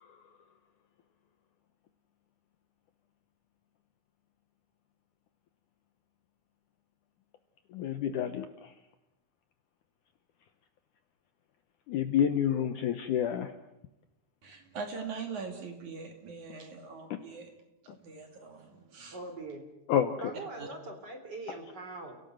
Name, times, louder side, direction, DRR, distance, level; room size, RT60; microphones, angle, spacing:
voice 1, 7.7-8.7 11.9-13.5 19.9-20.3, left 9 dB, 70° left, 8 dB, 2.1 m, -29 dB
voice 2, 14.4-17.5 18.0-19.2 20.6-20.7, right 5 dB, 50° right, 4 dB, 3.8 m, -42 dB
voice 3, 19.1-19.6 20.2-22.1, right 2 dB, 25° right, 5 dB, 4.0 m, -42 dB
30.0 x 18.0 x 7.8 m, 0.93 s
omnidirectional pair, 4.5 m